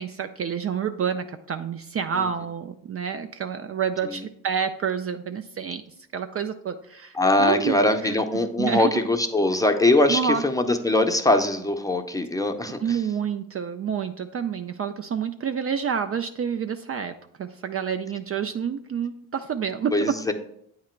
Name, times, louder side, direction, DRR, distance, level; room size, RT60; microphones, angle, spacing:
voice 1, 0.0-5.8 6.1-9.0 10.1-10.4 12.8-17.1 17.4-20.2, right 7 dB, 40° right, 8 dB, 0.4 m, -28 dB
voice 2, 7.2-13.0 19.9-20.3, left 2 dB, 10° left, 4 dB, 0.6 m, -22 dB
8.4 x 2.9 x 4.4 m, 0.72 s
cardioid pair, 70°, 36 cm